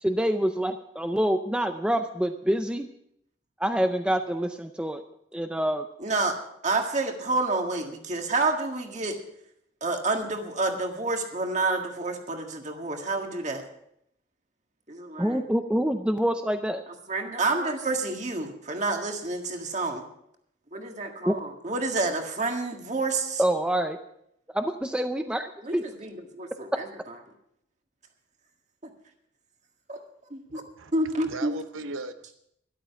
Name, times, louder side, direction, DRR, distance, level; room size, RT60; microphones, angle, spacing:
voice 1, 0.0-2.9 3.6-5.0 5.3-5.8 15.2-16.8 21.2-21.3 23.4-24.0 24.5-25.8, right 1 dB, 5° right, 7 dB, 0.5 m, -26 dB
voice 2, 6.0-6.3 6.6-9.2 9.8-13.6 14.9-15.4 17.1-20.0 20.7-23.4 25.6-26.9 28.8-28.9 29.9-30.0 30.3-30.6 30.9-31.5, right 3 dB, 35° right, 3 dB, 1.8 m, -29 dB
voice 3, 30.5-30.9 31.2-32.3, right 3 dB, 80° right, 10 dB, 0.8 m, -38 dB
13.0 x 12.0 x 5.7 m, 0.75 s
head